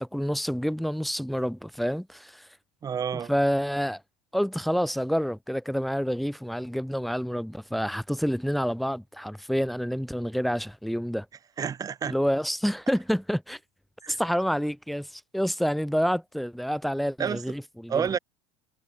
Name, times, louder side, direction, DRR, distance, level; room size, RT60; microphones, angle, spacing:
voice 1, 0.0-2.5 3.3-4.0 4.3-11.3 12.0-13.6 14.1-18.1, equal, ahead, 1.1 m, -28 dB
voice 2, 2.8-3.3 11.6-12.2 14.0-14.2 17.2-17.4 17.9-18.2, right 7 dB, 30° right, 1.8 m, -29 dB
supercardioid pair, 105°, 12 cm